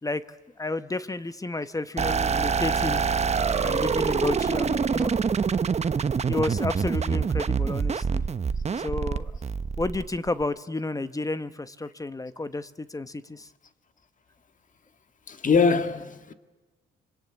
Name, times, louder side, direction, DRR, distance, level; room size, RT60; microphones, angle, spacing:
voice 1, 0.6-3.0 3.6-5.1 6.3-8.2 8.8-9.3 9.8-13.5, left 2 dB, 15° left, 1.1 m, -31 dB
sound 1, 2.0-10.4, right 6 dB, 35° right, 1.0 m, -26 dB
voice 2, 15.3-16.3, left 5 dB, 40° left, 1.9 m, -22 dB
26.5 x 24.0 x 8.7 m
cardioid pair, 90°, 20 cm